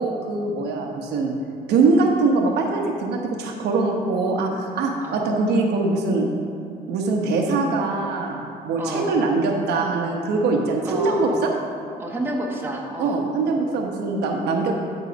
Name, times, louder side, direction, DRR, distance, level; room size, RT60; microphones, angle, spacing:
voice 1, 0.0-1.3 1.7-6.3 6.9-11.5 13.0-14.7, right 3 dB, 75° right, 1 dB, 1.0 m, -22 dB
voice 2, 8.8-9.1 10.8-11.4 12.0-13.2, right 1 dB, 15° right, -2 dB, 1.3 m, -30 dB
12.0 x 4.0 x 5.1 m, 2.4 s
cardioid pair, 110°, 17 cm